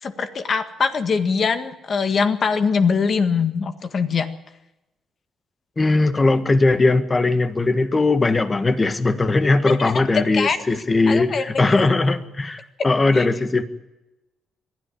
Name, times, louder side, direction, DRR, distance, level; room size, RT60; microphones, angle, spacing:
voice 1, 0.0-4.3 9.7-10.6 11.1-11.9 13.1-13.3, left 5 dB, 50° left, 8 dB, 1.7 m, -22 dB
voice 2, 5.8-13.6, left 3 dB, 25° left, 10 dB, 1.7 m, -19 dB
22.0 x 13.0 x 10.0 m, 0.97 s
cardioid pair, 90°, 0 cm